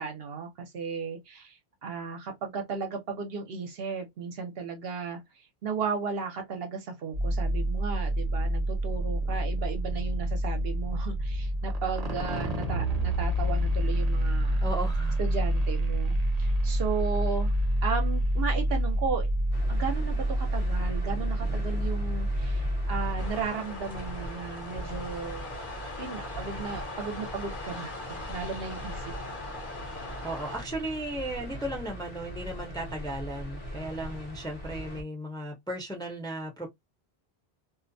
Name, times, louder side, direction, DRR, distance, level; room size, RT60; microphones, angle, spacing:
voice 1, 0.0-5.2 5.6-14.7 15.2-17.5 17.8-19.3 19.7-25.6 26.0-29.4, right 5 dB, 70° right, 0.9 m, -35 dB
sound 1, 7.1-23.3, right 1 dB, 40° right, 0.9 m, -28 dB
voice 2, 14.6-15.2 30.2-36.7, right 1 dB, 5° left, 0.6 m, -35 dB
sound 2, 19.5-35.0, right 1 dB, 40° left, 0.8 m, -40 dB
sound 3, 23.2-30.6, left 2 dB, 55° left, 1.1 m, -41 dB
2.4 x 2.1 x 2.5 m
omnidirectional pair, 1.1 m